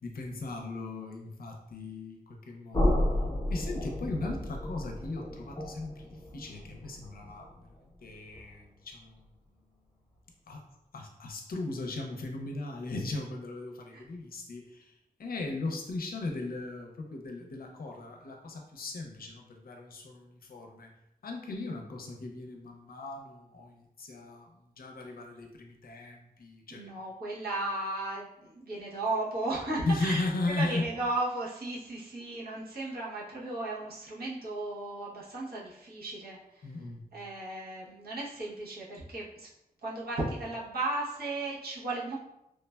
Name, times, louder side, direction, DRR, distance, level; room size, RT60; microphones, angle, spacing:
voice 1, 0.0-3.0 3.5-7.5 8.0-9.3 10.5-10.6 10.9-14.9 15.2-20.9 21.2-24.5 24.8-26.8 29.8-30.9 36.6-37.0, left 2 dB, 70° left, 2 dB, 0.5 m, -37 dB
sound 1, 2.7-8.6, left 1 dB, 25° left, 0.6 m, -32 dB
voice 2, 26.7-30.3 30.5-36.4 37.1-39.5 39.8-42.2, right 2 dB, 85° right, -5 dB, 0.8 m, -35 dB
3.1 x 2.1 x 2.2 m, 0.84 s
wide cardioid pair, 135°, 16 cm